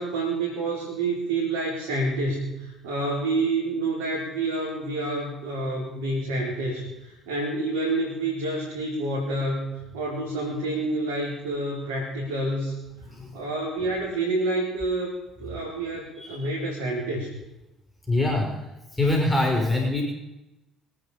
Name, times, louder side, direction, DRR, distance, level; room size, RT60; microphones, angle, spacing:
voice 1, 0.0-12.7 13.3-17.3, right 2 dB, 85° right, -4 dB, 4.7 m, -28 dB
voice 2, 13.1-13.4 16.2-16.4 18.1-20.0, left 2 dB, 10° left, 0 dB, 6.0 m, -24 dB
24.5 x 9.7 x 5.3 m, 0.96 s
hypercardioid pair, 60°, 0 cm